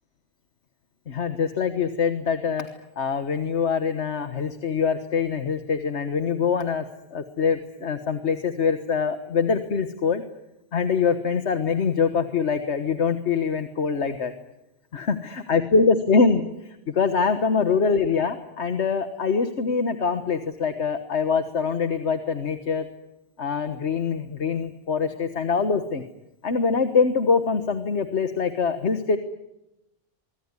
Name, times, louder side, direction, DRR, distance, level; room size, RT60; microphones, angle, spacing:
voice 1, 1.1-2.7 3.0-6.8 7.1-10.2 10.7-14.3 14.9-22.9 23.4-26.0 26.4-29.2, left 5 dB, 90° left, 9 dB, 1.6 m, -24 dB
24.5 x 23.5 x 9.7 m, 0.92 s
omnidirectional pair, 1.1 m